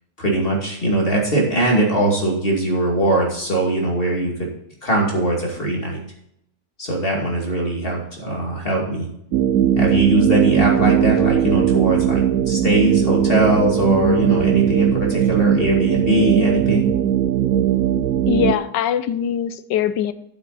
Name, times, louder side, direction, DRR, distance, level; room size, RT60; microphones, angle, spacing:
voice 1, 0.2-4.3 4.8-6.0 6.8-9.1 9.8-16.9, right 1 dB, 30° left, -2 dB, 2.5 m, -20 dB
sound 1, 9.3-18.5, right 9 dB, 70° right, 0.9 m, -19 dB
voice 2, 18.3-20.1, left 9 dB, 80° left, 13 dB, 1.3 m, -22 dB
13.0 x 6.8 x 4.1 m, 0.77 s
omnidirectional pair, 1.9 m